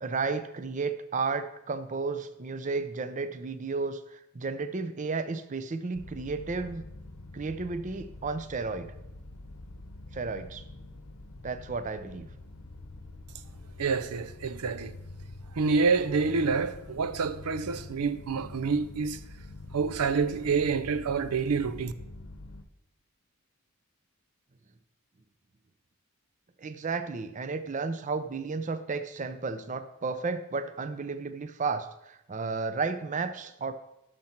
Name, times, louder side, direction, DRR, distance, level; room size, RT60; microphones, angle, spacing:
voice 1, 0.0-6.8 7.3-8.9 10.1-10.6 11.4-12.3 26.6-33.7, right 4 dB, 35° right, 0.5 m, -33 dB
sound 1, 5.9-22.6, left 2 dB, 70° left, 0.8 m, -46 dB
voice 2, 13.8-14.9 15.5-19.2 19.7-21.9, right 5 dB, 90° right, 0.5 m, -27 dB
11.5 x 6.5 x 4.4 m
head